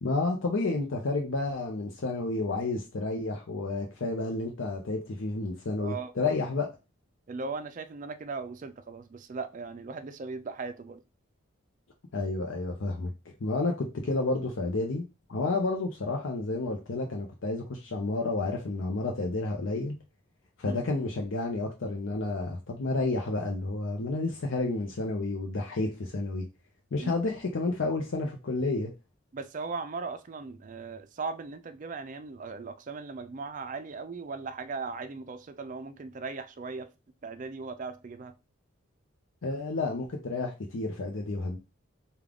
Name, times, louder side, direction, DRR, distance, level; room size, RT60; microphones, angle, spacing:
voice 1, 0.0-6.7 12.1-13.1 13.4-20.0 20.6-26.4 26.9-28.9 39.4-41.6, left 3 dB, 70° left, 0.6 m, -30 dB
voice 2, 5.8-6.3 7.3-11.0 20.6-20.8 27.0-27.1 29.3-36.9 37.2-38.3, right 4 dB, 40° right, 0.4 m, -38 dB
3.6 x 2.3 x 3.4 m
head